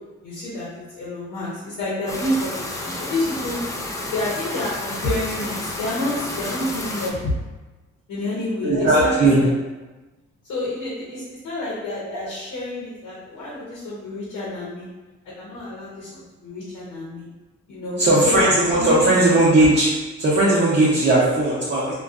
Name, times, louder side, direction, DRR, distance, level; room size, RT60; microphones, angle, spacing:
voice 1, 0.2-3.6 4.1-7.3 8.1-9.5 10.5-14.9 15.2-17.3 17.7-19.1, left 1 dB, 80° left, -7 dB, 0.8 m, -29 dB
sound 1, 2.1-7.1, left 1 dB, 10° left, 0.3 m, -31 dB
voice 2, 8.6-9.4 12.1-12.2 18.0-19.9 20.2-21.9, right 2 dB, 35° right, -9 dB, 0.7 m, -17 dB
2.4 x 2.3 x 2.4 m, 1.2 s
cardioid pair, 90°, 30 cm